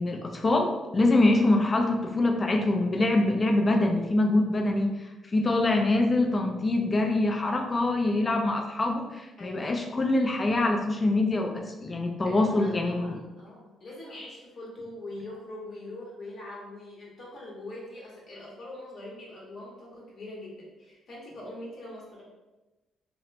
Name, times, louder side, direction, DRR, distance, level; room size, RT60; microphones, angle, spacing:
voice 1, 0.0-13.2, left 2 dB, 30° left, 3 dB, 0.4 m, -24 dB
voice 2, 12.2-22.2, left 1 dB, 50° left, -4 dB, 1.0 m, -43 dB
2.8 x 2.1 x 2.5 m, 1.1 s
cardioid pair, 90°, 0 cm